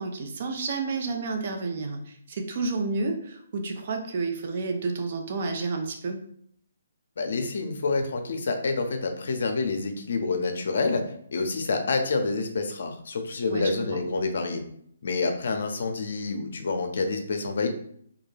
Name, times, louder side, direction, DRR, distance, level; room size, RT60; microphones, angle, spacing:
voice 1, 0.0-6.2 13.5-14.0, right 3 dB, 50° right, 4 dB, 0.4 m, -30 dB
voice 2, 7.2-11.0 11.3-14.6 15.0-17.7, left 3 dB, 65° left, 6 dB, 0.5 m, -28 dB
2.3 x 2.2 x 3.1 m, 0.65 s
hypercardioid pair, 155°, 0 cm